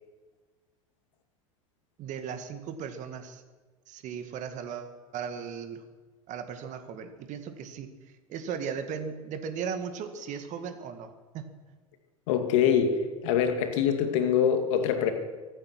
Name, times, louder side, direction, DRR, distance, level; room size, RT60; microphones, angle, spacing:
voice 1, 2.0-3.4 3.9-5.8 6.3-7.9 8.3-11.5, right 7 dB, 45° right, 9 dB, 2.0 m, -37 dB
voice 2, 12.3-15.1, left 8 dB, 65° left, 6 dB, 2.3 m, -24 dB
24.5 x 9.1 x 6.1 m, 1.3 s
hypercardioid pair, 85°, 17 cm